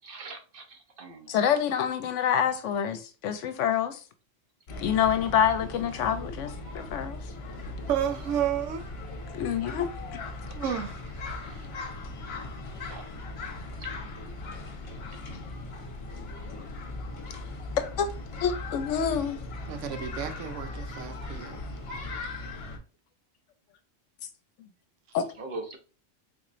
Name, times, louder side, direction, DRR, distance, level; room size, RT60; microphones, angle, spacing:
voice 1, 0.0-0.6 1.0-1.3 12.9-13.1 25.4-25.8, right 2 dB, 55° right, 0.8 m, -40 dB
voice 2, 1.3-4.0 4.8-7.2 9.4-9.9 18.0-18.1 18.4-19.4 25.1-25.2, left 8 dB, 80° left, 0.9 m, -26 dB
sound 1, 4.7-22.8, left 2 dB, 60° left, 1.0 m, -38 dB
voice 3, 7.9-8.9 10.5-11.7 19.7-21.8, right 9 dB, 90° right, 1.0 m, -32 dB
4.0 x 3.0 x 2.5 m
omnidirectional pair, 1.3 m